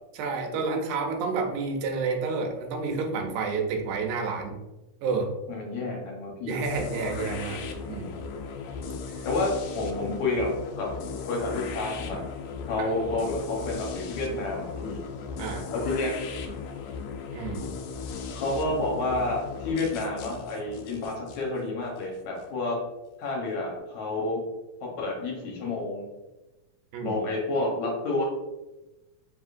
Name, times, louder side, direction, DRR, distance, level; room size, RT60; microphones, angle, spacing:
voice 1, 0.1-4.5 5.0-5.3 6.5-8.2 9.1-9.2 12.8-12.9 15.4-15.6 17.3-17.6 26.9-27.2, right 4 dB, 80° right, 2 dB, 2.1 m, -30 dB
voice 2, 5.5-6.6 9.3-10.5 10.8-10.9 11.3-12.2 12.7-15.0 15.7-16.1 18.4-22.8 23.2-24.4 24.8-26.1 27.0-28.2, left 2 dB, 70° left, -2 dB, 2.1 m, -29 dB
sound 1, 6.6-22.5, left 5 dB, 85° left, 1.5 m, -37 dB
4.8 x 3.5 x 2.4 m, 1.0 s
omnidirectional pair, 3.6 m